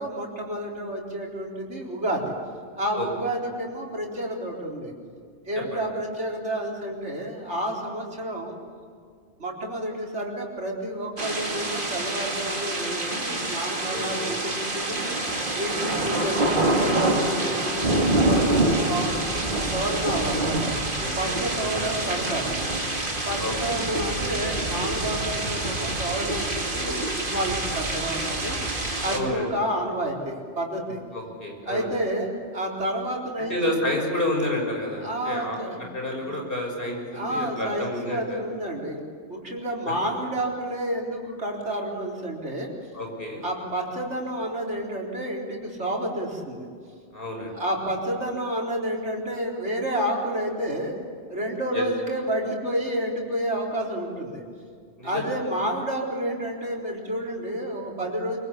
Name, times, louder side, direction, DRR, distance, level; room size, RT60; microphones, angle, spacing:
voice 1, 0.0-2.3 2.8-4.9 5.4-8.6 9.4-15.1 15.5-19.1 19.5-20.7 21.2-22.5 23.3-28.6 29.0-31.0 31.7-33.7 35.0-35.8 36.1-36.3 37.1-39.0 39.3-42.7 43.4-46.7 47.5-51.0 51.3-54.4 55.0-58.4, right 1 dB, 75° right, -2 dB, 4.4 m, -30 dB
sound 1, 11.2-29.2, right 2 dB, 45° right, 2.4 m, -26 dB
voice 2, 13.9-14.4 20.9-21.3 21.8-21.9 23.4-23.8 29.1-29.5 31.1-31.9 33.5-35.6 35.9-38.4 39.9-40.0 42.9-43.4 47.1-47.5 51.7-51.8 55.0-55.2, left 1 dB, 50° left, 1 dB, 6.2 m, -30 dB
24.5 x 23.5 x 8.4 m, 2.2 s
omnidirectional pair, 1.2 m